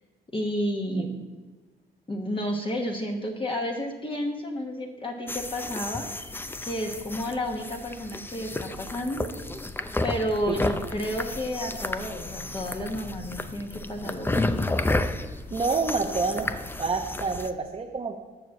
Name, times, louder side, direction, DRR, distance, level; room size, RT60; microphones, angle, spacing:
voice 1, 0.3-1.2 2.1-6.1 6.6-9.3 10.0-14.7, equal, 25° left, 1 dB, 1.3 m, -31 dB
sound 1, 5.3-17.5, left 2 dB, 10° left, 0.5 m, -32 dB
voice 2, 15.5-16.5 16.8-18.3, right 4 dB, 30° right, 1 dB, 0.9 m, -28 dB
7.0 x 6.2 x 7.3 m, 1.3 s
cardioid pair, 90°, 20 cm